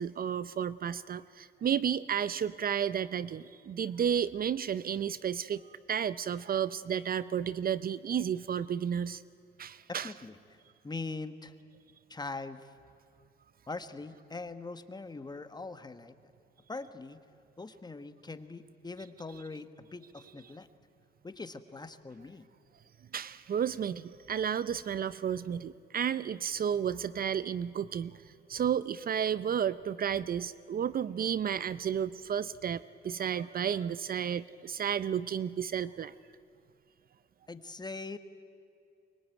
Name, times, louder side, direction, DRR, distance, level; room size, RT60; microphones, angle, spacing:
voice 1, 0.0-5.6 5.9-9.2 9.6-10.1 23.1-28.1 28.5-36.1, right 8 dB, 45° right, 17 dB, 0.6 m, -32 dB
voice 2, 9.9-10.6 10.8-11.5 12.1-12.7 13.7-16.1 16.7-17.2 17.6-20.7 21.2-22.5 37.5-38.2, left 3 dB, 20° left, 10 dB, 1.3 m, -42 dB
24.0 x 22.5 x 9.2 m, 2.6 s
cardioid pair, 90°, 20 cm